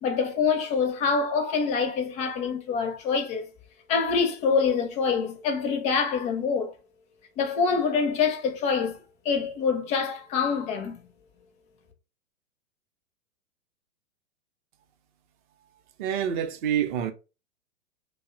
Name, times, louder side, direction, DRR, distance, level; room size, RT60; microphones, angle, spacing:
voice 1, 0.0-3.4 3.9-6.7 7.4-9.0 9.2-11.0, left 5 dB, 20° left, 0.4 m, -25 dB
voice 2, 16.0-17.1, right 9 dB, 40° right, 0.5 m, -27 dB
2.8 x 2.0 x 2.5 m
hypercardioid pair, 105°, 38 cm